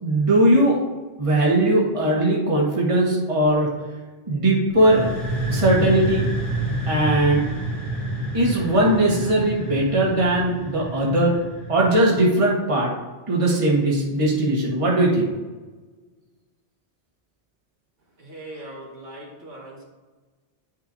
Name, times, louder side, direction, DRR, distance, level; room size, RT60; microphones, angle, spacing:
voice 1, 0.0-0.8 1.2-3.7 4.3-5.1 5.5-6.2 6.9-7.5 8.3-11.3 11.7-12.9 13.3-15.3, right 1 dB, 30° right, -3 dB, 1.4 m, -19 dB
sound 1, 4.7-12.3, right 1 dB, 30° left, 1.4 m, -29 dB
voice 2, 18.2-19.8, right 1 dB, 85° right, -4 dB, 2.2 m, -40 dB
10.0 x 5.7 x 2.7 m, 1.3 s
omnidirectional pair, 1.2 m